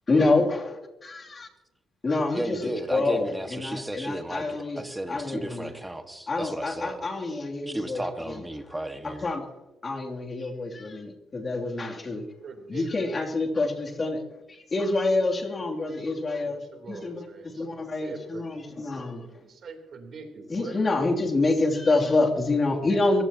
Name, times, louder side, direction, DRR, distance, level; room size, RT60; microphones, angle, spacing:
voice 1, 0.1-1.5 2.0-2.6 2.9-5.7 6.3-8.4 9.0-9.5 9.8-12.2 12.7-14.2 14.5-16.6 16.9-19.3 20.5-23.2, left 2 dB, 35° left, 0 dB, 2.9 m, -27 dB
voice 2, 2.3-7.0 7.7-9.3, right 1 dB, 10° right, 7 dB, 1.7 m, -34 dB
voice 3, 12.4-12.9 15.9-17.7 18.0-18.9 19.2-20.8, right 4 dB, 55° right, 3 dB, 3.5 m, -43 dB
23.5 x 16.5 x 3.0 m, 1.0 s
cardioid pair, 90°, 0 cm